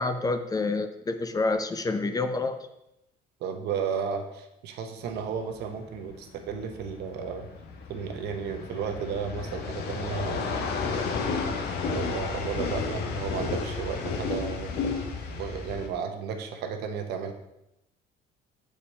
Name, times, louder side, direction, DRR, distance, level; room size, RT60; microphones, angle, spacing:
voice 1, 0.0-2.7, left 3 dB, 20° left, 8 dB, 0.6 m, -28 dB
voice 2, 3.4-7.5 7.9-10.8 11.8-14.8 15.3-17.3, right 6 dB, 80° right, 6 dB, 1.0 m, -33 dB
sound 1, 5.0-15.9, left 4 dB, 75° left, 1.0 m, -32 dB
6.8 x 4.9 x 4.2 m, 0.85 s
cardioid pair, 110°, 17 cm